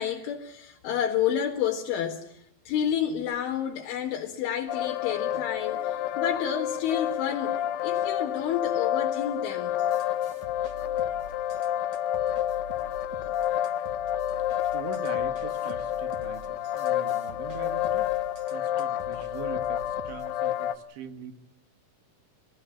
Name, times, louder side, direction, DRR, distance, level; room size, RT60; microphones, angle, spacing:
voice 1, 0.0-9.8 12.7-12.9, left 9 dB, 75° left, 4.0 m, -30 dB
sound 1, 4.7-20.8, left 11 dB, 90° left, 3.8 m, -29 dB
sound 2, 9.8-20.3, equal, 50° right, 2.3 m, -47 dB
voice 2, 14.7-18.1 18.5-21.4, right 7 dB, 70° right, 3.9 m, -42 dB
25.5 x 18.5 x 7.2 m
omnidirectional pair, 5.9 m